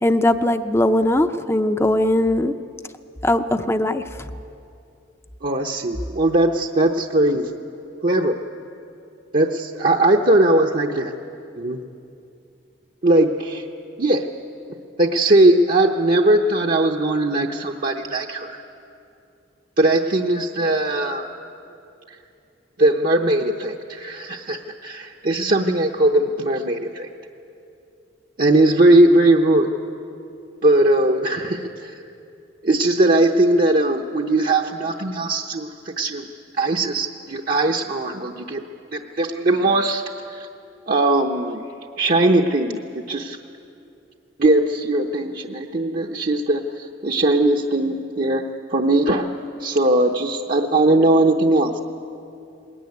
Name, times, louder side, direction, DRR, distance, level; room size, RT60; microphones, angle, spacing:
voice 1, 0.0-2.5 3.2-4.0, left 1 dB, 15° left, 9 dB, 0.6 m, -19 dB
voice 2, 5.4-7.5 8.0-8.4 9.3-11.1 11.6-11.8 13.0-13.7 14.0-14.3 15.0-18.6 19.8-21.3 22.1-22.2 22.8-27.1 28.4-29.7 30.6-32.0 32.6-36.3 36.6-38.6 38.9-40.0 40.3-40.5 40.9-41.7 42.0-43.4 44.4-49.3 49.6-51.8, right 1 dB, 45° right, 1 dB, 0.8 m, -19 dB
20.5 x 17.5 x 9.5 m, 2.7 s
head